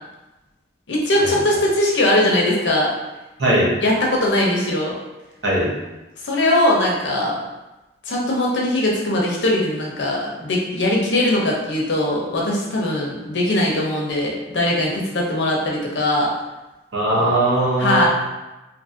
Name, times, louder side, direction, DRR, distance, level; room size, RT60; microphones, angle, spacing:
voice 1, 0.9-2.9 3.8-5.0 6.2-7.4 8.1-16.3 17.8-18.1, left 1 dB, 85° left, -2 dB, 0.7 m, -20 dB
voice 2, 16.9-18.1, right 1 dB, 90° right, -5 dB, 0.9 m, -18 dB
2.8 x 2.6 x 2.5 m, 1.1 s
head